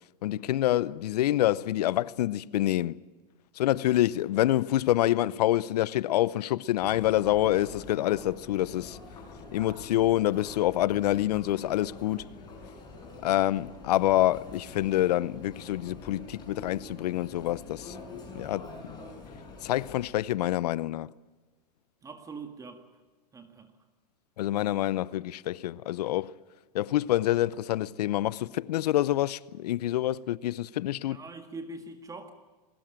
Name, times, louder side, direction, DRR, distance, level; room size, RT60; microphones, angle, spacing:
voice 1, 0.2-3.0 3.6-9.0 9.5-12.3 13.2-18.0 18.3-18.9 19.6-21.1 24.4-26.3 26.7-31.2, left 14 dB, 70° left, 0.7 m, -27 dB
Chatter, 6.8-20.1, left 3 dB, 20° left, 7.9 m, -46 dB
voice 2, 22.0-22.9 23.3-23.7 30.9-32.3, right 3 dB, 15° right, 1.8 m, -43 dB
21.0 x 18.0 x 8.9 m
hypercardioid pair, 120°, 21 cm